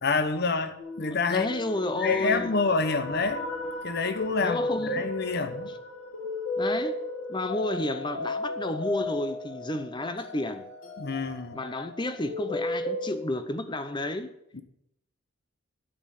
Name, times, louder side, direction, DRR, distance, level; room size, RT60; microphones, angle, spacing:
voice 1, 0.0-1.5 2.0-3.5 3.8-5.8 11.0-11.6 14.5-14.6, left 4 dB, 50° left, 1.0 m, -27 dB
sound 1, 0.8-13.1, left 2 dB, 70° left, 2.8 m, -35 dB
voice 2, 1.3-2.5 4.4-5.1 6.6-7.0 7.3-10.6 11.5-14.3, left 1 dB, 20° left, 0.7 m, -31 dB
8.8 x 7.7 x 8.4 m
head